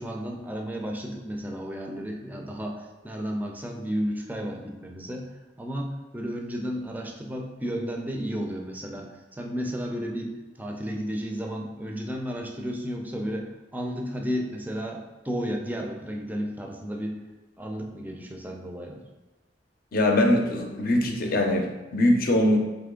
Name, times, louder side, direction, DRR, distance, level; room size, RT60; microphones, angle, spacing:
voice 1, 0.0-5.3 5.6-9.1 9.3-17.2 17.6-19.0, equal, 10° right, 2 dB, 0.5 m, -33 dB
voice 2, 19.9-22.6, left 1 dB, 55° left, 3 dB, 0.6 m, -22 dB
3.9 x 3.4 x 3.7 m, 1.1 s
head